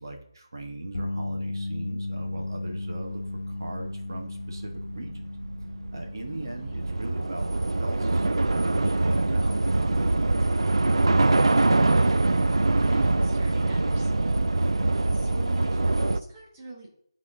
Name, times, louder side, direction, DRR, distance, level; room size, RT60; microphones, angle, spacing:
voice 1, 0.0-5.3 5.9-10.9, right 1 dB, 50° right, 2 dB, 1.2 m, -40 dB
sound 1, 0.9-13.2 13.5-13.8 16.0-16.1, left 2 dB, 70° left, 0.8 m, -37 dB
Train / Subway metro underground, 2.8-2.9 3.2-16.2, right 2 dB, 90° right, 0.4 m, -24 dB
voice 2, 12.0-16.9, right 2 dB, 15° right, -3 dB, 1.1 m, -43 dB
9.0 x 3.7 x 3.7 m, 0.67 s
figure-of-eight pair, 175°, 3 cm